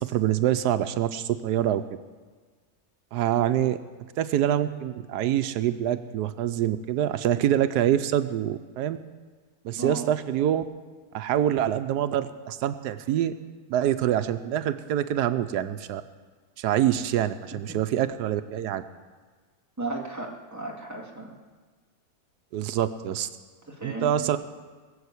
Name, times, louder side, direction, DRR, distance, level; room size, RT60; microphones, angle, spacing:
voice 1, 0.0-1.8 3.1-3.8 4.2-9.0 9.6-10.6 11.1-13.3 13.7-16.0 16.6-18.8 22.5-23.3 23.8-24.4, right 11 dB, 85° right, 10 dB, 1.2 m, -25 dB
voice 2, 19.8-21.3 23.7-24.2, right 2 dB, 10° right, -2 dB, 2.1 m, -34 dB
21.0 x 6.9 x 8.2 m, 1.5 s
omnidirectional pair, 1.7 m